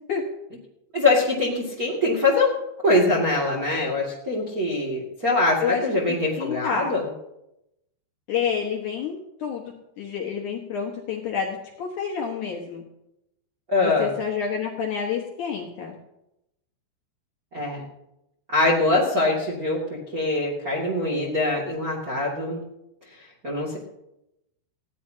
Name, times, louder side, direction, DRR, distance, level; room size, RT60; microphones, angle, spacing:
voice 1, 0.9-2.5 2.8-7.1 13.7-14.1 17.5-17.8 18.5-22.6 23.4-23.8, left 2 dB, 35° right, -2 dB, 1.4 m, -23 dB
voice 2, 6.1-6.9 8.3-12.8 13.8-15.9, left 7 dB, 80° left, 0 dB, 1.7 m, -29 dB
19.5 x 15.5 x 2.8 m, 0.87 s
omnidirectional pair, 5.6 m